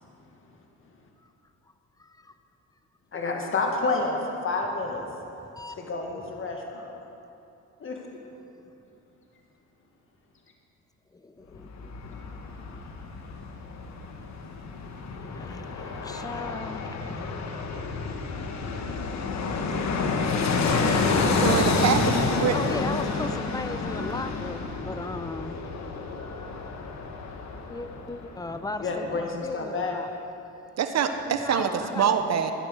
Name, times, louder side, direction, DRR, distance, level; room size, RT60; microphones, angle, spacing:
voice 1, 2.0-2.3 5.5-5.8 8.4-8.7 11.1-12.2 12.5-13.2 15.0-18.7 22.5-25.7 27.7-30.1 31.3-32.2, left 2 dB, 10° left, 10 dB, 0.7 m, -38 dB
voice 2, 3.1-5.1 5.8-7.0 7.8-7.9 28.8-30.0, left 3 dB, 45° left, 1 dB, 1.9 m, -29 dB
Fixed-wing aircraft airplane, 11.5-28.5 28.8-28.9, left 4 dB, 65° left, 1.3 m, -29 dB
voice 3, 21.3-22.5 30.8-32.5, right 7 dB, 60° right, 7 dB, 1.1 m, -25 dB
13.0 x 9.9 x 6.4 m, 2.9 s
cardioid pair, 90°, 30 cm